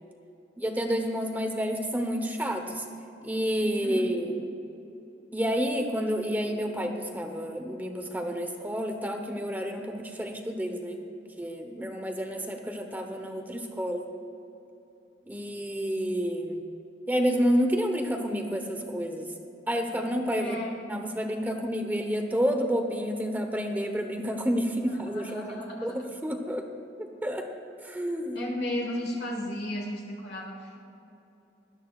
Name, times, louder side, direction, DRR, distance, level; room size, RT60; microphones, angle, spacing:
voice 1, 0.6-2.8 3.2-4.5 5.3-11.0 11.4-14.1 15.3-16.6 17.1-19.3 19.7-20.6 20.8-26.7 27.0-27.5 27.8-28.4, equal, 10° right, 4 dB, 0.9 m, -29 dB
voice 2, 3.6-4.1 20.4-20.8 25.0-26.0 28.3-30.8, left 1 dB, 60° left, -1 dB, 1.4 m, -34 dB
19.0 x 12.5 x 2.4 m, 2.9 s
head